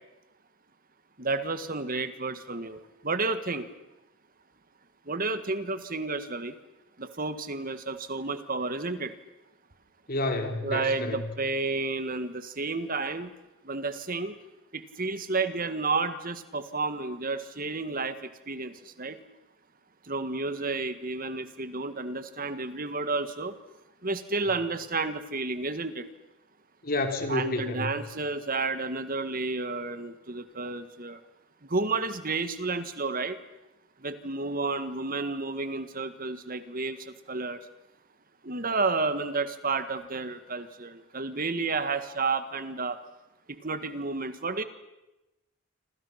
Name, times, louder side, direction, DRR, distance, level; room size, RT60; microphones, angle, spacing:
voice 1, 1.2-3.7 5.1-6.6 7.0-9.1 10.6-13.3 13.6-14.4 14.7-19.2 20.0-23.6 24.0-26.1 27.3-31.2 31.6-33.4 34.0-37.6 38.4-43.0 43.5-44.6, right 3 dB, 40° right, 10 dB, 1.7 m, -31 dB
voice 2, 10.1-11.2 26.8-27.9, left 2 dB, 45° left, 5 dB, 3.5 m, -29 dB
28.0 x 26.5 x 5.9 m, 0.98 s
head